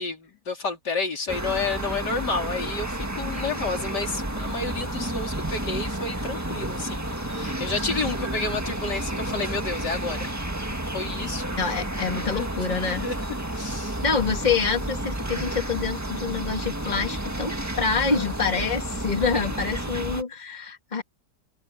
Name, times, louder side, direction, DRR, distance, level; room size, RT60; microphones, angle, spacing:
voice 1, 0.0-10.3 10.9-11.5 12.3-12.5 12.8-13.2 13.5-14.0 19.4-19.5, left 3 dB, 75° left, 4.2 m, -30 dB
sound 1, 1.3-20.2, right 1 dB, 10° right, 1.7 m, -31 dB
voice 2, 11.6-13.1 14.0-21.0, left 5 dB, 25° left, 2.1 m, -26 dB
omnidirectional pair, 1.8 m